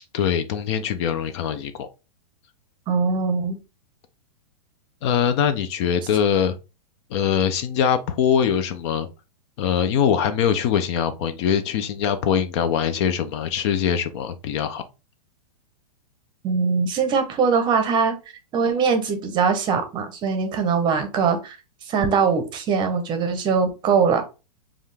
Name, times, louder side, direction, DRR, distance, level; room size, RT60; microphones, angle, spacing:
voice 1, 0.1-1.9 5.0-6.5 7.1-9.1 9.6-14.8, left 8 dB, 45° left, 0.5 m, -22 dB
voice 2, 2.9-3.6 16.4-18.1 18.5-21.6 21.9-24.2, right 5 dB, 20° right, 0.7 m, -21 dB
5.3 x 2.4 x 3.2 m
hypercardioid pair, 145°, 21 cm